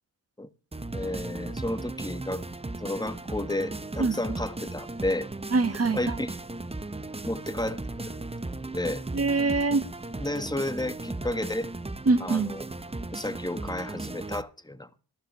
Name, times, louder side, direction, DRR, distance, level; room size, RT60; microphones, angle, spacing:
sound 1, 0.7-14.4, right 2 dB, 15° right, 0.9 m, -36 dB
voice 1, 0.9-2.4 2.8-5.3 5.9-6.4 7.2-7.8 8.0-8.2 8.7-9.0 10.2-11.7 12.2-12.7 13.1-14.9, left 1 dB, 10° left, 1.4 m, -32 dB
voice 2, 5.5-6.2 9.1-9.8 12.0-12.6, right 3 dB, 30° right, 1.6 m, -24 dB
15.0 x 12.0 x 3.1 m
supercardioid pair, 45°, 46 cm